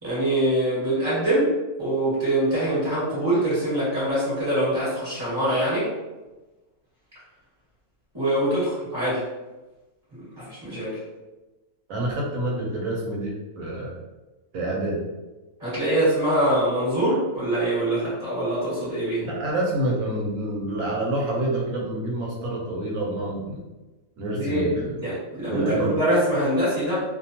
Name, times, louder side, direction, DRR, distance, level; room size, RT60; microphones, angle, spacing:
voice 1, 0.0-1.5 1.8-5.9 8.1-9.2 10.4-11.0 15.6-19.3 24.3-24.6 25.0-27.0, right 1 dB, 20° right, -11 dB, 1.2 m, -24 dB
voice 2, 11.9-13.9 14.5-15.0 19.2-23.7 24.2-25.0 25.5-26.0, right 1 dB, 75° right, -3 dB, 1.0 m, -27 dB
2.4 x 2.2 x 2.8 m, 1.1 s
omnidirectional pair, 1.5 m